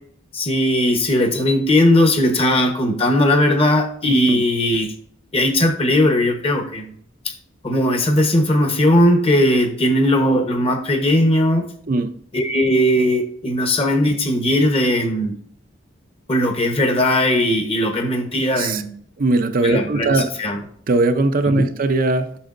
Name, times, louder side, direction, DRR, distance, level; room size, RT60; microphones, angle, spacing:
voice 1, 0.3-4.9 5.3-6.9 7.6-11.6 12.3-15.3 16.3-19.0 19.6-20.6 21.5-21.7, left 1 dB, 30° left, 1.0 m, -18 dB
voice 2, 11.9-12.2 18.6-18.8 19.2-20.4 20.9-22.4, right 2 dB, 45° right, 0.5 m, -19 dB
8.6 x 6.3 x 2.5 m
head